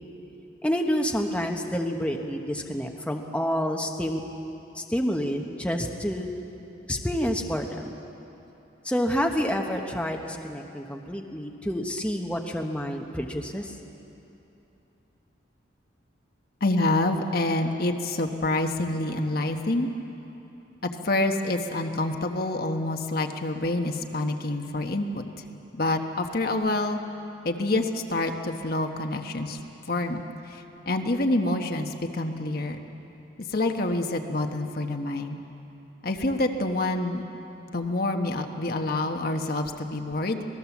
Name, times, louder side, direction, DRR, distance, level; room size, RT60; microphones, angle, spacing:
voice 1, 0.6-4.2 4.7-6.3 6.9-8.0 8.8-13.8, equal, 5° left, 2 dB, 1.2 m, -28 dB
voice 2, 16.6-19.9 20.8-25.2 25.7-27.0 27.4-29.6 29.9-32.8 33.5-35.4 36.0-37.2 37.7-40.4, left 2 dB, 50° left, 4 dB, 1.3 m, -27 dB
26.5 x 19.5 x 7.3 m, 2.9 s
head